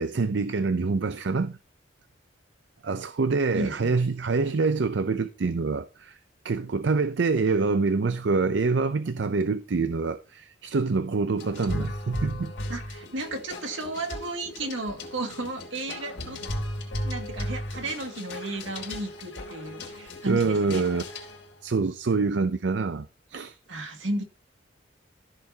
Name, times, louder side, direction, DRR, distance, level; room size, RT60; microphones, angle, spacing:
voice 1, 0.0-1.6 2.8-6.2 6.4-12.5 20.3-21.0 21.6-23.6, right 4 dB, 65° right, 0.5 m, -26 dB
voice 2, 3.5-3.9 12.7-16.4 17.0-20.8 23.7-24.2, right 2 dB, 85° right, 2.1 m, -34 dB
sound 1, 11.4-21.6, left 1 dB, 80° left, 3.2 m, -36 dB
14.0 x 6.7 x 2.8 m
head